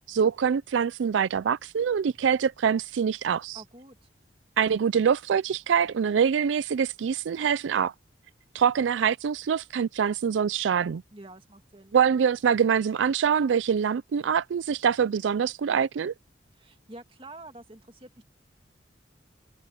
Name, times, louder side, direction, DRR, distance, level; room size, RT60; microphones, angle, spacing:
voice 1, 0.1-3.6 4.6-7.9 8.5-11.0 11.9-16.1, right 7 dB, 90° right, 0.4 m, -24 dB
voice 2, 3.5-4.0 11.1-12.0 16.5-18.3, right 2 dB, 30° right, 2.2 m, -47 dB
head